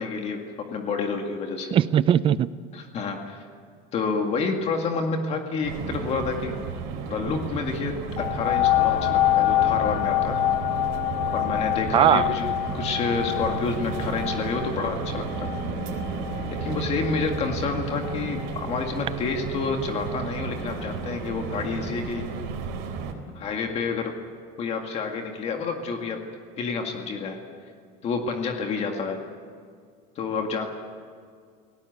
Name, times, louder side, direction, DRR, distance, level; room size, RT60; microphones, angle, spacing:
voice 1, 0.0-1.7 2.7-3.4 3.9-6.6 7.1-10.4 11.3-15.5 16.5-22.3 23.4-24.2 24.6-26.2 26.6-27.4 28.0-29.2 30.2-30.7, left 4 dB, 35° left, 3 dB, 2.1 m, -29 dB
voice 2, 1.7-2.5 11.9-12.3, right 10 dB, 30° right, 16 dB, 0.5 m, -19 dB
sound 1, 5.6-23.1, right 5 dB, 80° right, 3.8 m, -33 dB
sound 2, 8.2-17.4 18.1-18.2, left 15 dB, 85° left, 1.3 m, -26 dB
29.5 x 18.5 x 8.2 m, 2.1 s
cardioid pair, 175°, 19 cm